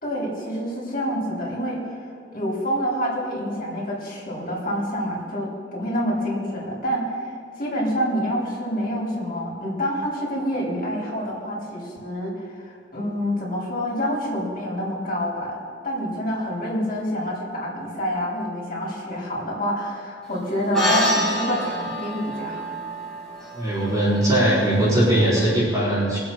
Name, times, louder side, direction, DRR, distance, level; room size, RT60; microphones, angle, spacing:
voice 1, 0.0-15.6 15.8-22.6, equal, 50° left, -4 dB, 3.9 m, -27 dB
sound 1, 20.7-25.4, left 1 dB, ahead, 4.3 m, -27 dB
voice 2, 23.5-26.2, right 1 dB, 20° right, -9 dB, 4.3 m, -20 dB
22.5 x 8.0 x 5.5 m, 2.3 s
head